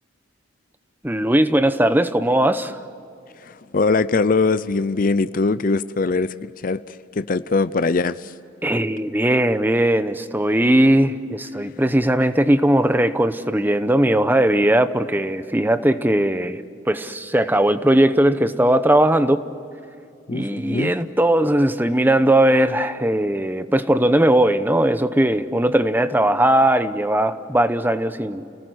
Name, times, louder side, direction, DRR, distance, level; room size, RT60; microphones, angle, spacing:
voice 1, 1.0-2.8 8.6-19.4 20.3-28.4, right 1 dB, 10° right, 11 dB, 0.8 m, -19 dB
voice 2, 3.4-6.3 6.6-8.3 20.3-20.9, left 3 dB, 45° left, 14 dB, 0.6 m, -21 dB
30.0 x 18.5 x 8.0 m, 2.6 s
head